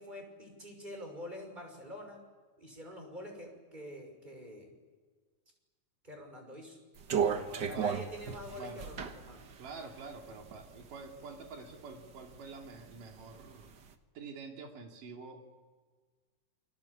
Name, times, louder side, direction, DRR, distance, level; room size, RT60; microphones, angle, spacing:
voice 1, 0.0-2.2 2.6-4.7 6.0-6.8 7.7-9.4, left 1 dB, 15° right, 3 dB, 6.3 m, -46 dB
sound 1, 7.0-10.9 11.4-12.4 12.7-13.7, right 7 dB, 50° right, 1.4 m, -34 dB
voice 2, 7.3-7.9 8.6-8.9 9.6-13.7 14.1-15.5, right 4 dB, 85° right, 2 dB, 4.4 m, -47 dB
29.0 x 22.0 x 8.6 m, 1.4 s
omnidirectional pair, 3.7 m